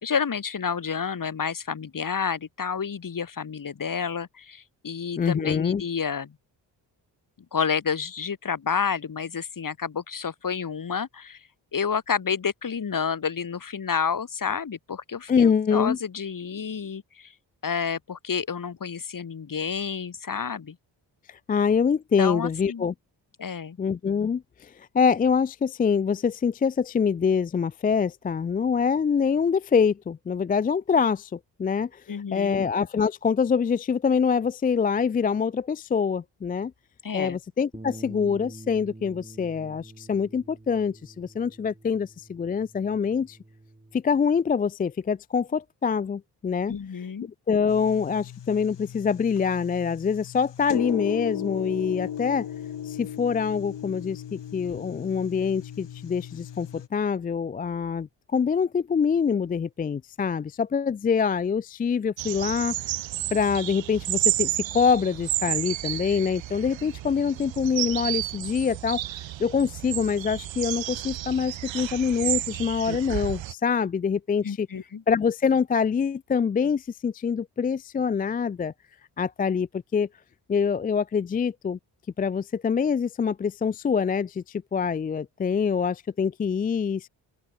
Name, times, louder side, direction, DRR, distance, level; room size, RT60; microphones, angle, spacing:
voice 1, 0.0-6.3 7.5-11.4 11.7-17.3 17.6-20.8 22.2-22.9 23.4-23.8 32.1-32.7 37.0-37.4 46.7-47.3 74.4-75.0, left 6 dB, 45° left, 2.6 m, -30 dB
voice 2, 5.2-5.8 15.3-16.0 21.3-22.9 23.8-32.0 32.3-36.7 37.1-43.4 43.9-46.7 47.2-52.5 52.8-62.7 63.3-74.7 75.1-78.7 79.2-80.1 80.5-81.8 82.2-87.1, left 6 dB, 20° left, 0.3 m, -25 dB
Bass guitar, 37.7-44.0, right 2 dB, 15° right, 5.9 m, -46 dB
sound 1, 47.7-56.9, left 9 dB, 70° left, 3.0 m, -36 dB
sound 2, 62.2-73.5, right 14 dB, 85° right, 1.6 m, -31 dB
open air
cardioid pair, 60°, 45 cm